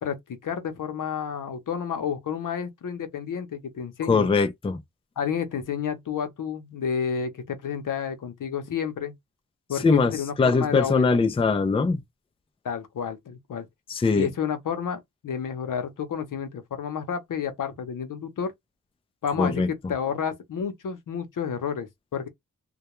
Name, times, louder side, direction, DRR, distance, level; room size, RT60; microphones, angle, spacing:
voice 1, 0.0-4.3 5.2-9.1 9.7-11.1 12.6-13.7 14.2-18.5 19.2-22.3, left 7 dB, 80° left, 0.7 m, -30 dB
voice 2, 4.1-4.8 9.8-12.0 13.9-14.3 19.4-19.7, left 4 dB, 20° left, 0.4 m, -22 dB
2.2 x 2.2 x 2.9 m
wide cardioid pair, 120°, 31 cm